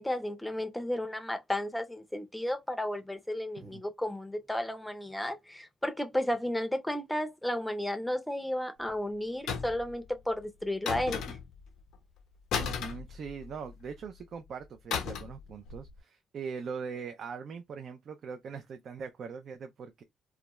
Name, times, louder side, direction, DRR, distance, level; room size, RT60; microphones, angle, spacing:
voice 1, 0.0-11.4, left 1 dB, 5° left, 0.5 m, -33 dB
sound 1, 9.5-9.9 10.9-11.6 12.5-13.7 14.9-15.4 15.7-15.9, left 7 dB, 85° left, 0.6 m, -34 dB
voice 2, 12.6-20.0, right 6 dB, 60° right, 0.4 m, -41 dB
2.4 x 2.2 x 2.9 m
cardioid pair, 90°, 0 cm